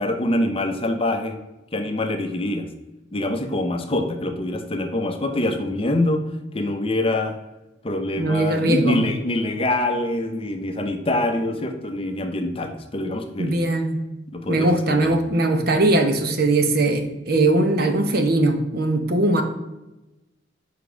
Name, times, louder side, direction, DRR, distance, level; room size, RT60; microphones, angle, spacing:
voice 1, 0.0-1.4 1.7-2.7 3.1-6.2 6.5-7.3 7.8-13.6 14.3-15.1, left 1 dB, 30° left, 5 dB, 0.7 m, -25 dB
voice 2, 8.2-9.0 13.4-14.0 14.5-19.4, right 2 dB, 55° right, 6 dB, 0.8 m, -20 dB
5.2 x 5.0 x 5.0 m, 1.0 s
head